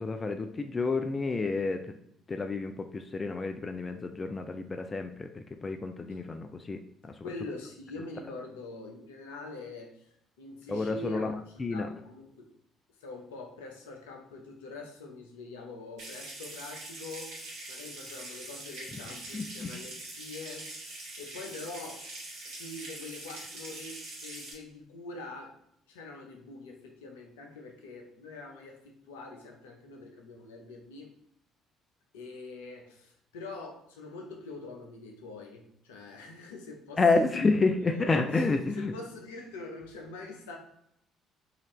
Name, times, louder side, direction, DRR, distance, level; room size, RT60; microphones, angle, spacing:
voice 1, 0.0-1.9 2.3-7.3 10.7-11.3 11.6-11.9 19.3-19.8 37.0-38.9, left 3 dB, 30° left, 6 dB, 0.3 m, -29 dB
voice 2, 7.2-10.1 10.4-12.5 13.0-17.4 17.7-20.7 21.2-22.1 22.4-25.6 25.9-31.1 32.1-37.4 37.8-40.6, left 3 dB, 75° left, 2 dB, 0.6 m, -44 dB
Water tap faucet / Sink (filling or washing) / Trickle dribble, 16.0-24.5, right 2 dB, 65° right, 1.3 m, -43 dB
4.0 x 2.5 x 3.0 m, 0.73 s
figure-of-eight pair, 50°, 0 cm